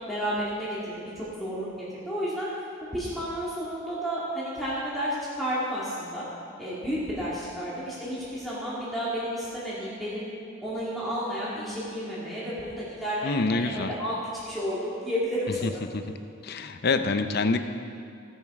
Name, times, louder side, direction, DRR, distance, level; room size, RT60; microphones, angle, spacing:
voice 1, 0.0-1.7 2.1-2.5 2.9-6.3 6.6-10.3 10.6-15.8, equal, ahead, -10 dB, 2.2 m, -31 dB
voice 2, 13.2-13.9 15.6-16.0 16.4-17.6, left 3 dB, 50° left, 9 dB, 0.6 m, -26 dB
16.0 x 7.4 x 4.8 m, 2.5 s
head